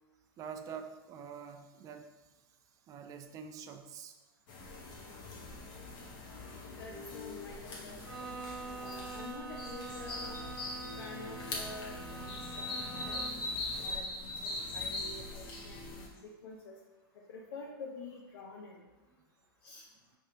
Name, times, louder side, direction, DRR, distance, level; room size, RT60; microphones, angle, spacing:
voice 1, 0.4-2.1 2.9-4.2, right 7 dB, 25° right, 7 dB, 0.4 m, -46 dB
sound 1, 4.5-16.1, left 2 dB, 35° left, 1.0 m, -41 dB
voice 2, 6.7-8.4 8.7-10.4 10.9-13.3 13.8-16.8 17.3-18.8 19.6-19.9, left 3 dB, 70° left, -2 dB, 0.7 m, -48 dB
Bowed string instrument, 8.0-13.6, right 4 dB, 90° right, 0.7 m, -45 dB
5.3 x 3.1 x 2.7 m, 1.1 s
hypercardioid pair, 120°, 13 cm